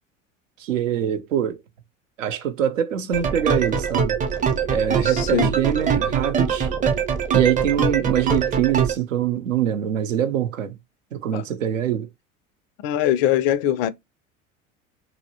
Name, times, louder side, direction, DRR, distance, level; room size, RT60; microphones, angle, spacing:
voice 1, 0.6-1.6 2.2-4.2 4.7-6.7 7.3-10.8 11.1-12.1, right 9 dB, 80° right, 0.6 m, -24 dB
sound 1, 3.1-8.9, right 6 dB, 20° right, 0.6 m, -23 dB
voice 2, 5.0-5.5 11.3-11.4 12.8-13.9, left 11 dB, 55° left, 0.4 m, -22 dB
2.9 x 2.8 x 2.7 m
figure-of-eight pair, 75°, 38 cm